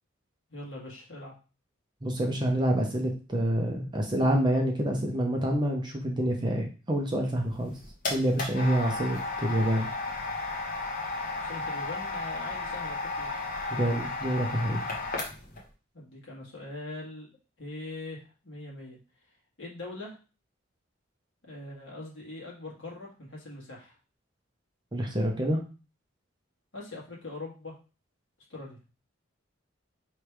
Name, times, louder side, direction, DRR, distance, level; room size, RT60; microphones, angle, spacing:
voice 1, 0.5-1.3 11.3-13.3 15.9-17.3 17.6-19.0 19.6-20.2 21.4-23.9 26.7-27.8 28.5-28.8, left 2 dB, 65° left, -3 dB, 1.7 m, -42 dB
voice 2, 2.0-7.7 8.1-9.9 13.7-14.8 24.9-25.6, right 1 dB, 20° right, 2 dB, 0.7 m, -27 dB
sound 1, 7.5-15.6, left 3 dB, 40° left, 1.1 m, -34 dB
3.3 x 3.2 x 4.6 m, 0.34 s
head